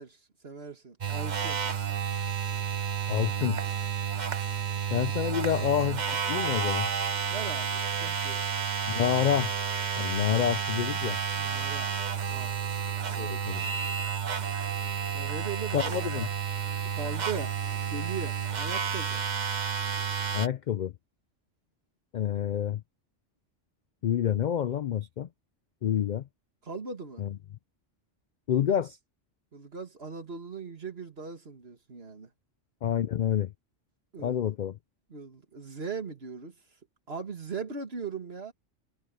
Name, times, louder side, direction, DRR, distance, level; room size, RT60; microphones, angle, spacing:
voice 1, 0.0-1.6 7.3-8.5 11.3-12.0 12.3-12.5 15.1-16.1 16.8-17.6 17.9-19.3 26.6-27.2 29.5-32.3 34.1-34.5 35.1-36.5 37.1-38.5, right 5 dB, 55° right, 2.4 m, -39 dB
sound 1, 1.0-20.5, right 7 dB, 40° right, 1.0 m, -31 dB
voice 2, 3.1-3.6 4.9-6.0 6.3-6.9 8.9-9.5 10.0-11.2 13.2-13.7 15.7-16.3 20.3-20.9 22.1-22.8 24.0-25.3 25.8-26.3 27.2-27.4 28.5-29.0 32.8-33.5 34.2-34.7, left 9 dB, 60° left, 0.5 m, -28 dB
omnidirectional pair, 1.2 m